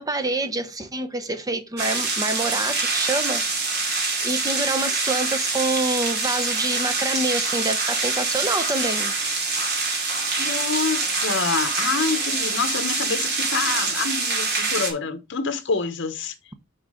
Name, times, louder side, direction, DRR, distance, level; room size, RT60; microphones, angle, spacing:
voice 1, 0.0-3.4 4.2-9.1, right 2 dB, 20° right, 0.7 m, -26 dB
sound 1, 1.8-14.9, right 3 dB, 55° right, 2.3 m, -25 dB
voice 2, 10.4-16.3, left 4 dB, 60° left, 1.0 m, -27 dB
6.0 x 3.9 x 4.9 m
head